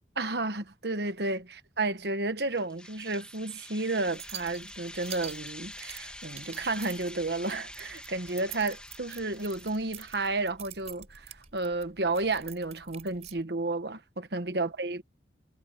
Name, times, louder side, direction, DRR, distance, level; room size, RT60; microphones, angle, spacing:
voice 1, 0.1-15.0, right 2 dB, 65° right, 1.3 m, -32 dB
sound 1, 2.6-10.4, left 1 dB, 5° left, 3.0 m, -47 dB
sound 2, 4.1-13.4, right 10 dB, 35° right, 4.4 m, -47 dB
head